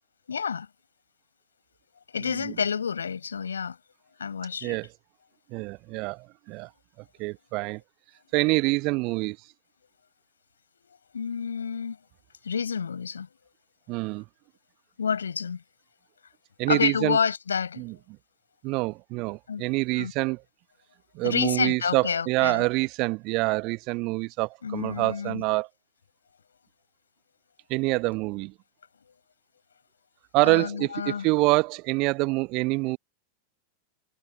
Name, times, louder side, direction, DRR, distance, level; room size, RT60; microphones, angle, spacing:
voice 1, 0.3-0.7 2.1-3.8 4.2-4.8 11.1-12.0 12.4-13.3 15.0-15.6 16.7-17.8 19.5-19.7 20.0-20.1 21.2-22.6 24.6-25.4 30.4-31.3, left 6 dB, 70° left, 5.2 m, -29 dB
voice 2, 5.5-6.7 7.2-7.8 8.3-9.4 13.9-14.2 16.6-17.2 17.8-17.9 18.6-20.4 21.1-25.7 27.7-28.5 30.3-33.0, right 25 dB, 40° right, 1.0 m, -26 dB
figure-of-eight pair, 90°, 0 cm